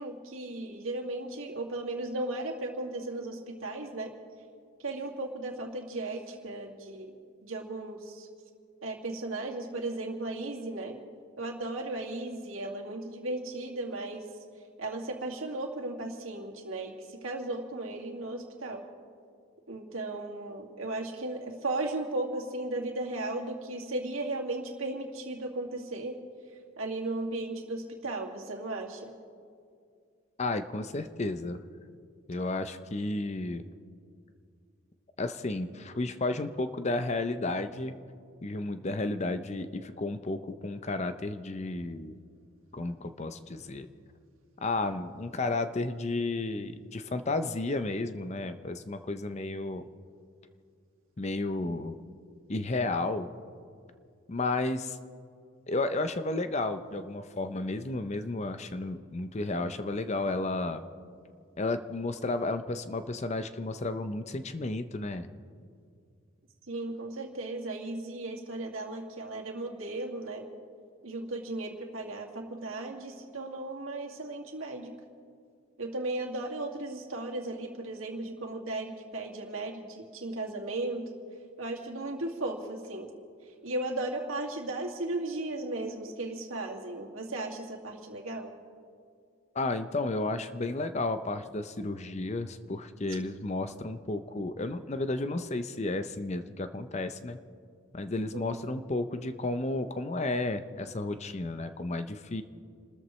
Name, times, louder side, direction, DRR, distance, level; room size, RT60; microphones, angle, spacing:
voice 1, 0.0-4.1 4.8-7.1 7.4-8.3 8.8-11.0 11.4-14.3 14.8-18.8 19.7-26.2 26.8-29.1 66.7-70.4 71.0-74.9 75.8-81.1 81.6-83.1 83.6-88.5 98.3-98.6, right 2 dB, 85° right, -1 dB, 2.3 m, -36 dB
voice 2, 30.4-31.6 32.3-33.6 35.2-38.0 38.4-42.2 42.7-43.9 44.6-49.8 51.2-52.0 52.5-53.3 54.3-55.0 55.7-60.8 61.6-65.3 89.5-97.4 97.9-102.4, left 2 dB, 35° left, 10 dB, 0.6 m, -32 dB
29.5 x 13.5 x 3.2 m, 2.3 s
head